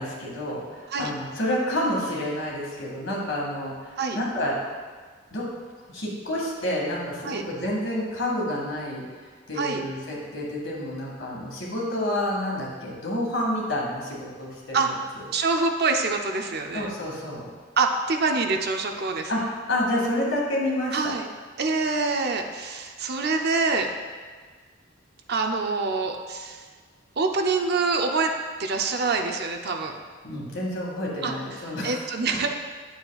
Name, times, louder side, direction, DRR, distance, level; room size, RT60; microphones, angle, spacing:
voice 1, 0.0-4.6 5.3-5.5 5.9-9.1 9.5-14.9 16.7-17.5 19.3-19.4 19.7-21.1 30.2-32.4, left 1 dB, 80° left, -3 dB, 2.0 m, -29 dB
voice 2, 15.3-16.9 17.8-19.3 20.9-21.3 21.6-23.9 25.3-26.6 27.2-28.3 28.6-30.0 31.2-32.5, right 4 dB, 55° right, 4 dB, 0.6 m, -25 dB
9.3 x 6.9 x 2.4 m, 1.5 s
head